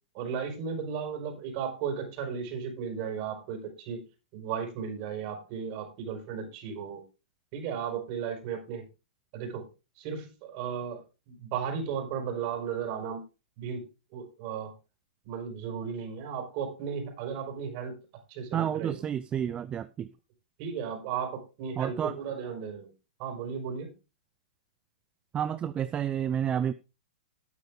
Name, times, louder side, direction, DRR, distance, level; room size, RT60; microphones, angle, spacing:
voice 1, 0.1-4.0 4.3-7.0 7.5-8.9 9.3-9.7 10.0-11.0 11.3-13.2 13.6-13.8 14.1-14.7 15.2-17.9 18.3-19.0 20.6-22.9 23.2-23.9, right 7 dB, 45° right, 4.9 m, -35 dB
voice 2, 18.5-20.1 21.8-22.1 25.3-26.7, right 9 dB, 20° right, 0.6 m, -30 dB
12.5 x 9.2 x 3.6 m
hypercardioid pair, 115°, 5 cm